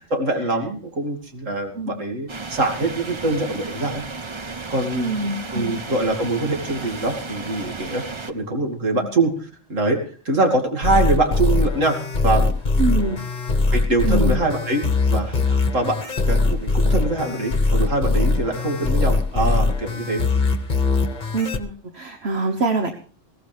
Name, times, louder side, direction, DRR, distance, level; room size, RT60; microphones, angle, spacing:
voice 1, 0.0-4.0 4.7-5.1 5.5-9.3 9.7-10.0 10.2-12.0 12.2-12.5 13.7-14.8 15.1-16.0 16.2-20.2, right 2 dB, 85° right, 3 dB, 3.1 m, -23 dB
sound 1, 2.3-8.3, right 3 dB, 25° right, 0.8 m, -34 dB
voice 2, 4.9-5.8 12.8-13.2 14.0-14.3 21.3-22.9, right 3 dB, 55° right, 5 dB, 1.4 m, -25 dB
sound 2, 10.8-21.6, left 3 dB, 40° left, 1.4 m, -21 dB
21.0 x 16.5 x 3.4 m, 0.39 s
omnidirectional pair, 1.3 m